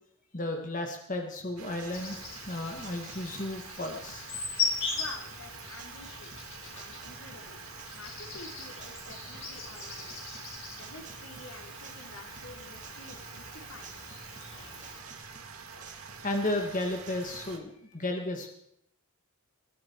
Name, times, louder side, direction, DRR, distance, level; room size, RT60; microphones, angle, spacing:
voice 1, 0.3-2.2 2.5-4.3 16.2-18.5, left 1 dB, 35° left, 3 dB, 1.7 m, -33 dB
sound 1, 1.4-17.4, right 4 dB, 35° right, 2.2 m, -53 dB
sound 2, 1.6-17.6, right 5 dB, 75° right, 2.2 m, -47 dB
Insect, 1.9-15.0, left 4 dB, 60° left, 4.0 m, -40 dB
voice 2, 4.9-7.6 7.9-10.3 10.7-14.0, left 2 dB, 85° left, 2 dB, 3.2 m, -49 dB
21.0 x 13.0 x 4.6 m, 0.74 s
head